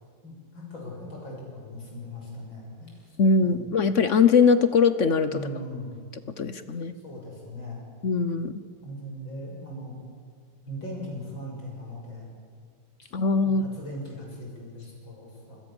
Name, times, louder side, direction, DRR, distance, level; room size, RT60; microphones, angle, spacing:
voice 1, 0.2-3.7 5.2-6.0 7.0-7.8 8.8-10.0 10.6-12.3 13.4-15.6, equal, 70° left, -1 dB, 7.6 m, -39 dB
voice 2, 3.2-5.3 6.4-6.9 8.0-8.5 13.1-13.6, left 5 dB, 50° left, 12 dB, 0.9 m, -21 dB
27.0 x 21.5 x 7.2 m, 2.1 s
omnidirectional pair, 2.2 m